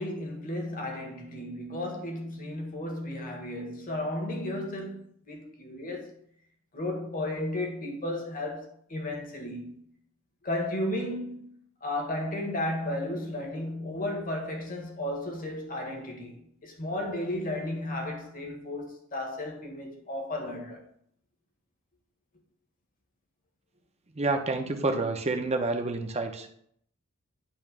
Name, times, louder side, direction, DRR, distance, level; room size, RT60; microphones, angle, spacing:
voice 1, 0.0-6.1 6.7-9.7 10.4-20.8, left 1 dB, 45° left, 1.7 m, -34 dB
voice 2, 24.1-26.5, right 3 dB, 30° right, 0.8 m, -28 dB
8.9 x 3.1 x 6.0 m
head